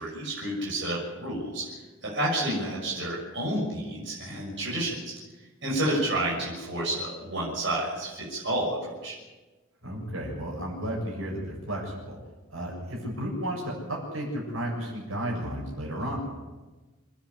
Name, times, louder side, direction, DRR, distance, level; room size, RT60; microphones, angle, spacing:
voice 1, 0.0-1.6 2.0-5.1 5.6-9.2, right 1 dB, 60° right, -4 dB, 6.5 m, -30 dB
voice 2, 9.8-12.2 12.5-16.2, right 1 dB, 80° right, -1 dB, 7.3 m, -33 dB
27.5 x 10.5 x 9.8 m, 1.2 s
head